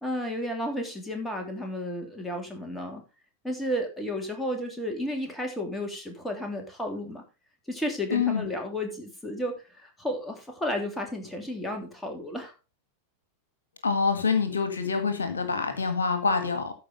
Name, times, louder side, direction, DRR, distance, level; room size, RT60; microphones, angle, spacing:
voice 1, 0.0-3.0 3.4-7.2 7.7-12.5, left 1 dB, 5° left, 2 dB, 3.0 m, -32 dB
voice 2, 8.1-8.5 13.8-16.7, left 5 dB, 70° left, 9 dB, 1.6 m, -26 dB
13.5 x 5.0 x 5.0 m, 0.31 s
figure-of-eight pair, 90°, 0 cm